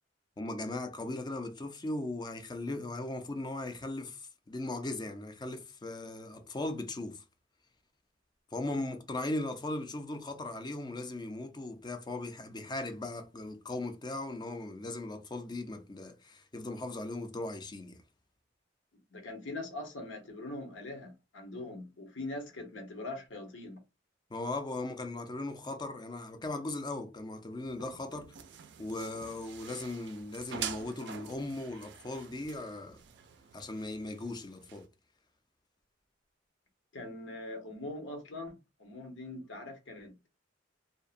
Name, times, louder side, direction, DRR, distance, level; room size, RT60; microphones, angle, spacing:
voice 1, 0.4-7.2 8.5-18.0 24.3-28.3 28.8-33.0 33.5-34.9, left 2 dB, 25° left, 0.4 m, -38 dB
voice 2, 19.1-23.8 36.9-40.3, left 2 dB, 85° left, 0.9 m, -42 dB
sound 1, 27.6-34.9, right 8 dB, 65° right, 0.4 m, -46 dB
2.6 x 2.1 x 2.5 m
head